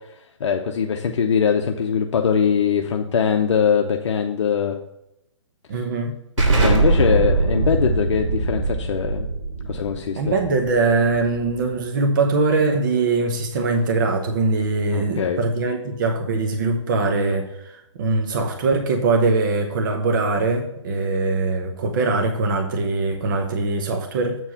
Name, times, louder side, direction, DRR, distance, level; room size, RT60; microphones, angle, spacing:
voice 1, 0.4-4.7 6.4-9.3 9.7-10.2 14.9-15.4, left 7 dB, 65° left, 3 dB, 0.8 m, -21 dB
voice 2, 5.7-6.2 10.1-24.4, right 3 dB, 40° right, 4 dB, 0.9 m, -22 dB
Explosion, 6.4-11.8, right 3 dB, 75° right, 3.0 m, -22 dB
8.0 x 4.7 x 5.6 m, 0.82 s
hypercardioid pair, 165°, 16 cm